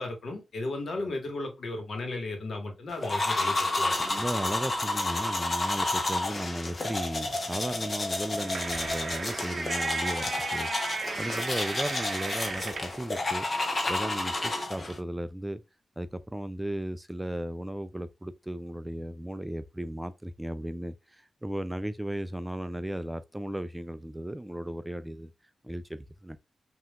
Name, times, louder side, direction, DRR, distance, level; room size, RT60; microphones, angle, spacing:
voice 1, 0.0-4.0, left 2 dB, 65° left, 1.5 m, -35 dB
sound 1, 3.0-15.0, left 2 dB, 35° left, 0.9 m, -31 dB
voice 2, 3.9-10.7 11.2-15.6 16.0-25.3 25.6-26.4, right 1 dB, 10° right, 0.3 m, -35 dB
sound 2, 8.1-13.0, right 4 dB, 50° right, 0.8 m, -35 dB
5.5 x 2.9 x 2.4 m
wide cardioid pair, 110°, 0 cm